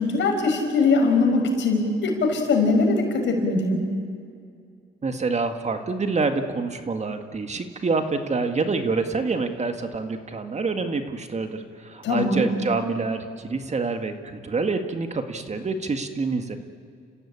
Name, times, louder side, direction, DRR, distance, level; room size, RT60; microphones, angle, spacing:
voice 1, 0.0-3.8 12.0-12.5, left 3 dB, 70° left, 2 dB, 5.8 m, -21 dB
voice 2, 5.0-16.6, right 4 dB, 35° right, 6 dB, 1.9 m, -27 dB
29.5 x 15.5 x 8.8 m, 2.3 s
cardioid pair, 90°, 20 cm